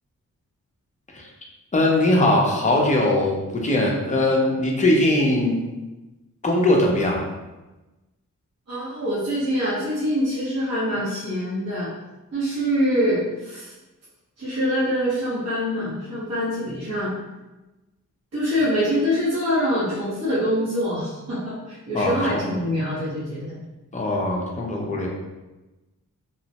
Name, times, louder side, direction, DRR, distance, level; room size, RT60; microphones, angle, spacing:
voice 1, 1.7-5.6 6.4-7.2 21.9-22.5 23.9-25.1, left 1 dB, 25° left, -1 dB, 0.5 m, -20 dB
voice 2, 8.7-11.9 12.3-13.7 14.4-17.2 18.3-23.6, equal, 50° right, -10 dB, 0.9 m, -24 dB
2.9 x 2.0 x 2.7 m, 1.1 s
wide cardioid pair, 140°, 32 cm